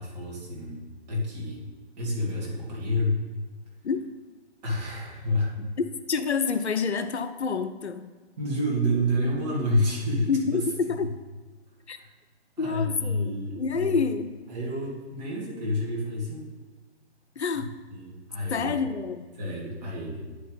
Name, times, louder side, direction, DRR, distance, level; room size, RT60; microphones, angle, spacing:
voice 1, 0.0-1.6 2.0-3.2 4.6-5.6 8.4-10.6 10.9-11.1 11.9-12.0 12.6-14.0 14.5-16.5 17.5-17.6 17.9-18.8 19.4-20.3, left 1 dB, 35° right, -4 dB, 2.4 m, -29 dB
voice 2, 6.1-8.1 10.3-11.1 11.9-12.0 12.6-14.3 17.4-17.7 18.5-19.3, left 5 dB, 75° left, 9 dB, 0.7 m, -28 dB
9.6 x 5.1 x 4.0 m, 1.3 s
figure-of-eight pair, 145°, 34 cm